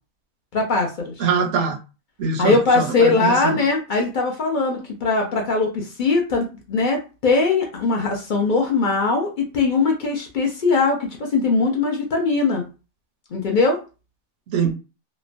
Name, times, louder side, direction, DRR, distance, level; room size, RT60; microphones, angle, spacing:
voice 1, 0.5-1.2 2.4-12.6 13.3-13.8, left 3 dB, 55° left, 2 dB, 0.6 m, -20 dB
voice 2, 1.2-1.8 2.2-3.6 14.5-14.7, right 5 dB, 75° right, 7 dB, 0.9 m, -23 dB
2.9 x 2.1 x 2.5 m, 0.31 s
omnidirectional pair, 1.3 m